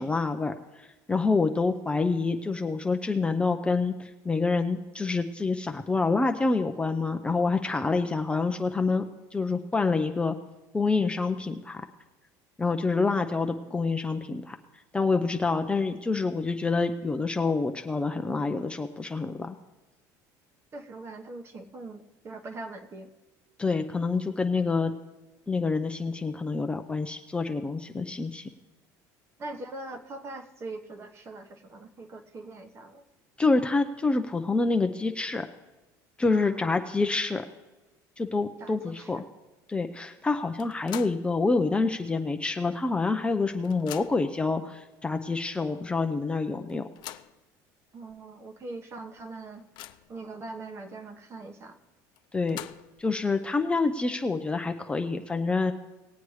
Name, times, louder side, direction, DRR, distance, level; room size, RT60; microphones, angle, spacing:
voice 1, 0.0-9.0 9.3-10.3 10.7-11.8 12.6-14.6 14.9-19.6 23.6-24.9 25.5-28.4 33.4-35.4 36.2-37.4 38.2-39.2 39.7-46.9 52.3-52.6 53.0-55.7, left 3 dB, 10° left, 5 dB, 0.5 m, -27 dB
voice 2, 20.7-23.1 29.4-33.0 36.3-36.7 38.6-39.2 47.9-49.6 50.1-51.8, right 2 dB, 30° right, 8 dB, 1.1 m, -42 dB
sound 1, 40.6-41.3 41.7-41.8 42.9-43.0 43.3-44.4 45.1-45.2 45.6-45.7 46.7-47.4 48.1-48.2 48.6-48.7 49.2-50.2 52.2-53.1, left 13 dB, 60° left, 0.6 m, -43 dB
20.0 x 8.2 x 3.2 m, 1.1 s
cardioid pair, 125°, 9 cm